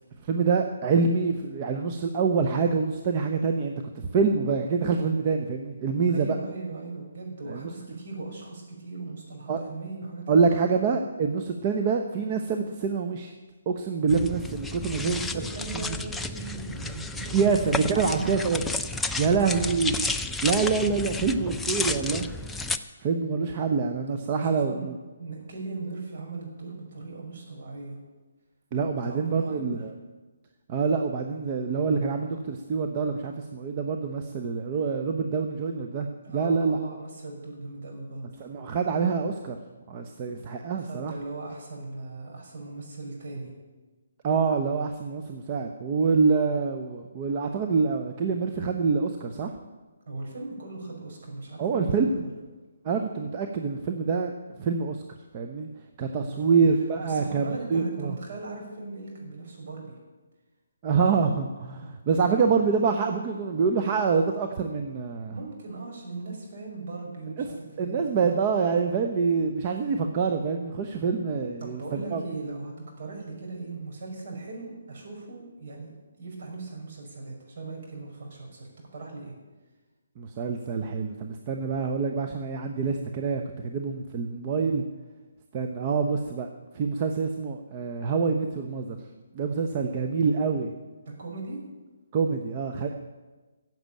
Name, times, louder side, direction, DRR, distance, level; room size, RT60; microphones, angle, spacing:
voice 1, 0.2-6.4 7.5-7.7 9.5-9.6 10.3-13.3 13.7-15.2 15.7-15.8 17.3-18.6 19.1-19.9 20.4-22.3 23.0-24.9 28.7-29.9 30.7-36.1 36.3-36.8 38.4-39.6 39.9-41.1 44.2-49.5 51.6-52.1 52.8-54.3 54.6-55.0 55.3-55.7 56.0-58.2 60.8-65.3 67.4-67.5 67.8-72.2 80.2-84.8 85.5-86.5 86.7-89.0 89.3-90.7 92.1-92.9, right 5 dB, 30° right, 4 dB, 1.0 m, -26 dB
voice 2, 6.1-10.6 15.0-17.4 17.7-18.7 19.1-19.9 24.4-24.9 25.2-28.0 29.0-29.8 36.2-38.3 40.2-40.4 40.8-43.5 50.1-52.3 56.1-56.6 57.0-59.9 65.3-68.4 71.6-75.9 76.2-79.3 91.0-91.6, right 3 dB, 55° right, -1 dB, 5.8 m, -38 dB
sound 1, 14.1-22.8, left 3 dB, 5° left, 0.5 m, -32 dB
14.5 x 7.8 x 9.0 m, 1.2 s
hypercardioid pair, 150°, 0 cm